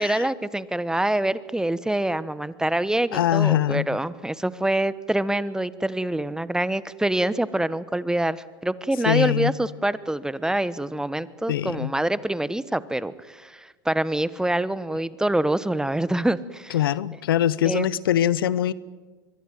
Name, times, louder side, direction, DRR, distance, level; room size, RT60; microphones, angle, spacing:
voice 1, 0.0-16.8 17.6-17.9, right 1 dB, 5° right, 17 dB, 1.1 m, -25 dB
voice 2, 3.1-3.9 9.0-9.5 11.5-11.9 16.7-18.7, left 11 dB, 80° left, 20 dB, 0.9 m, -22 dB
23.5 x 22.0 x 9.3 m, 1.3 s
hypercardioid pair, 90°, 12 cm